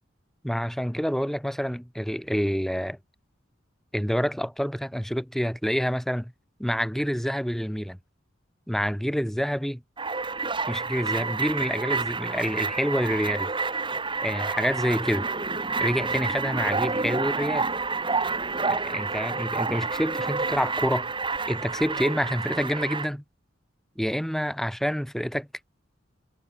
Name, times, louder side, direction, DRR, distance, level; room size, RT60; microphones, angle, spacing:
voice 1, 0.4-3.0 3.9-6.3 6.6-8.0 8.7-9.8 10.7-13.5 14.2-15.3 15.8-17.7 18.6-21.1 21.5-23.2 24.0-25.5, equal, ahead, 6.1 m, -27 dB
sound 1, 10.0-23.1, right 4 dB, 25° right, 3.2 m, -29 dB
head